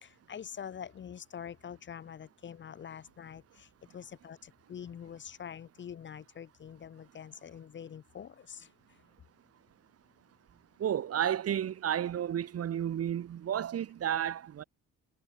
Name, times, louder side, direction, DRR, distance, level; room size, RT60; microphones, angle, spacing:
voice 1, 0.0-3.7 3.9-8.7, left 8 dB, 40° left, 0.6 m, -45 dB
voice 2, 10.8-14.6, right 10 dB, 55° right, 1.1 m, -32 dB
cardioid pair, 90°, 30 cm